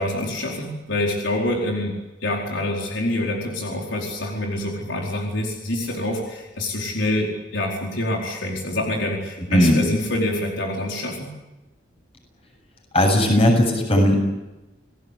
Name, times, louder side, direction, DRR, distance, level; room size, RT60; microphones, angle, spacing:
voice 1, 0.0-11.3, left 1 dB, 75° left, 0 dB, 4.6 m, -26 dB
voice 2, 9.5-9.8 12.9-14.2, left 1 dB, 30° left, 2 dB, 7.8 m, -17 dB
29.5 x 18.5 x 8.4 m, 1.0 s
head